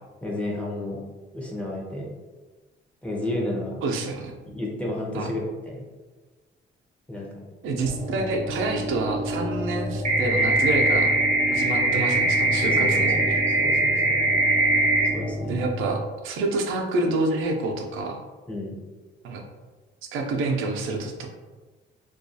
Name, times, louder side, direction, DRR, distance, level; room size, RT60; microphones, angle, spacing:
voice 1, 0.2-1.0 1.3-2.1 3.0-3.8 4.4-5.8 7.1-7.3 11.8-11.9 12.6-13.3 13.6-14.2 15.0-15.5 18.5-18.8, left 1 dB, 5° left, -3 dB, 0.6 m, -31 dB
voice 2, 3.8-4.3 5.1-5.3 7.6-11.1 11.5-13.2 15.5-18.2 19.2-19.4 20.1-21.3, right 2 dB, 90° right, 2 dB, 0.4 m, -27 dB
sound 1, 7.8-15.9, equal, 90° left, 1.2 m, -31 dB
sound 2, 10.0-15.1, right 2 dB, 35° right, 0.6 m, -21 dB
2.3 x 2.3 x 2.6 m, 1.3 s
cardioid pair, 90°, 20 cm